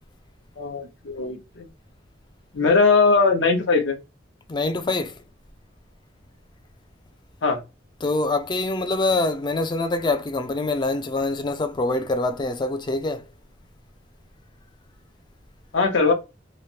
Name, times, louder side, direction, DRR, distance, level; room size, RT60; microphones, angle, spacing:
voice 1, 0.6-1.7 2.5-4.0 7.4-7.6 15.7-16.1, left 4 dB, 80° left, 0.8 m, -20 dB
voice 2, 4.5-5.1 8.0-13.3, left 2 dB, 25° left, 0.4 m, -25 dB
3.0 x 2.0 x 2.7 m
head